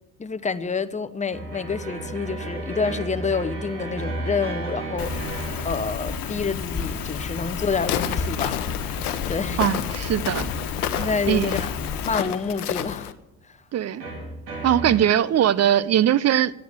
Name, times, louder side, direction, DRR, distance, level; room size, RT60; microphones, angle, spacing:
voice 1, 0.2-8.7 9.3-9.6 11.0-11.7 12.0-13.1, left 5 dB, 15° left, 0.8 m, -28 dB
sound 1, 1.3-6.4 8.0-8.7 10.9-11.7 14.0-15.0, right 2 dB, 80° right, 2.9 m, -33 dB
Rain, 5.0-12.1, left 5 dB, 50° left, 1.4 m, -31 dB
Walk footsteps, 7.8-13.1, left 11 dB, 80° left, 0.8 m, -31 dB
voice 2, 9.6-10.5 11.3-11.5 13.7-14.0 14.6-16.5, right 10 dB, 35° right, 0.6 m, -20 dB
11.0 x 9.2 x 8.7 m
hypercardioid pair, 60°, 45 cm